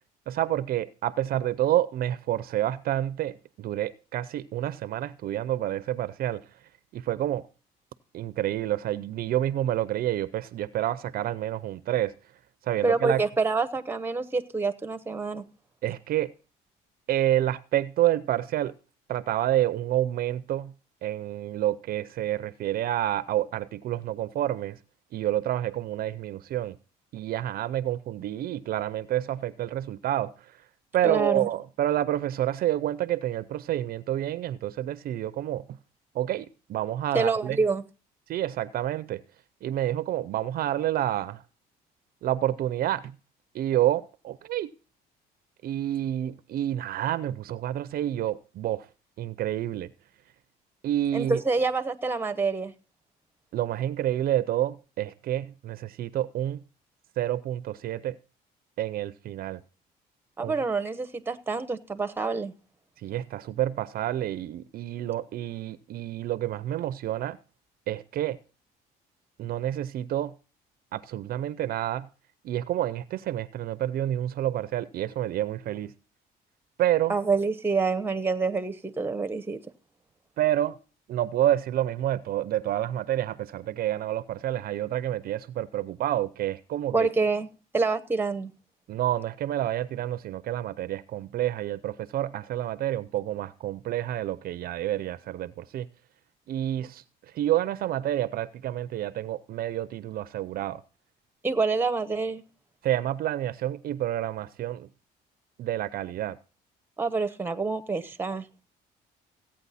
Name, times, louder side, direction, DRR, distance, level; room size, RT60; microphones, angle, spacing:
voice 1, 0.3-6.4 6.9-7.5 8.1-12.1 12.6-13.2 15.8-16.3 17.1-18.7 19.1-20.7 21.0-24.8 25.1-26.8 27.1-30.6 30.9-35.6 36.1-37.6 38.3-39.2 39.6-41.4 42.2-43.1 43.5-44.7 45.6-48.9 49.2-49.9 50.8-51.4 53.5-56.6 57.2-58.2 58.8-59.6 60.4-60.5 63.0-67.4 67.9-68.4 69.4-70.3 70.9-72.1 72.4-75.9 76.8-77.1 80.4-80.8 81.1-87.1 88.9-95.9 96.5-97.0 97.3-100.8 102.8-104.9 105.6-106.4, right 12 dB, 60° right, 0.6 m, -28 dB
voice 2, 12.8-15.4 31.0-31.5 37.1-37.8 51.1-52.7 60.4-62.5 77.1-79.6 86.9-87.5 87.7-88.5 101.4-102.4 107.0-108.4, right 4 dB, 10° right, 0.9 m, -27 dB
15.5 x 8.8 x 4.1 m
cardioid pair, 110°, 17 cm